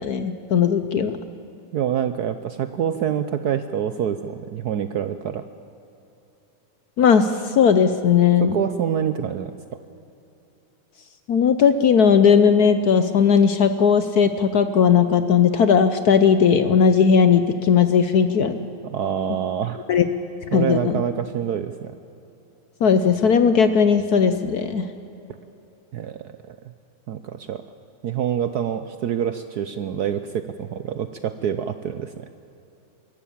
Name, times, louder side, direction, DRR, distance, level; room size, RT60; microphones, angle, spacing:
voice 1, 0.0-1.1 7.0-8.6 11.3-18.6 19.9-20.0 20.5-21.0 22.8-24.9, left 6 dB, 60° left, 10 dB, 1.1 m, -17 dB
voice 2, 1.7-5.4 8.4-9.5 18.8-19.8 20.5-21.9 25.9-26.6 27.1-27.6 28.0-32.3, right 9 dB, 65° right, 10 dB, 1.0 m, -26 dB
24.5 x 14.0 x 8.6 m, 3.0 s
omnidirectional pair, 2.3 m